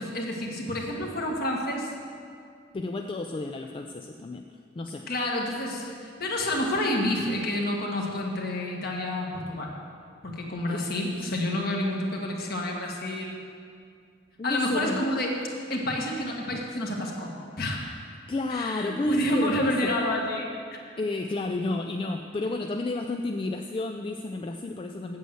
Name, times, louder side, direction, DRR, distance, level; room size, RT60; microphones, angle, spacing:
voice 1, 0.0-1.9 5.1-9.7 10.2-13.4 14.4-15.3 15.7-17.3 17.6-17.8 18.5-20.8, left 1 dB, 50° left, 0 dB, 1.6 m, -29 dB
voice 2, 2.7-4.4 4.8-5.1 10.7-10.9 11.2-11.3 14.4-15.0 18.3-19.9 21.0-25.2, left 2 dB, 25° left, 4 dB, 0.3 m, -31 dB
8.2 x 7.7 x 7.8 m, 2.3 s
head